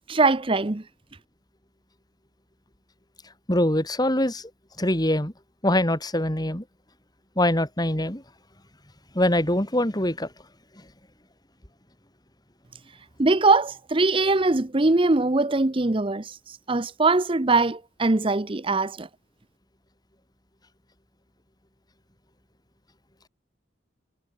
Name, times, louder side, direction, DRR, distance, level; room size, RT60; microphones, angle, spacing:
voice 1, 0.1-0.8 13.2-16.3 16.7-19.1, right 3 dB, 25° right, 0.8 m, -21 dB
voice 2, 3.5-4.5 4.8-5.3 5.6-6.6 7.4-8.2 9.1-10.3, left 1 dB, 20° left, 3.7 m, -23 dB
head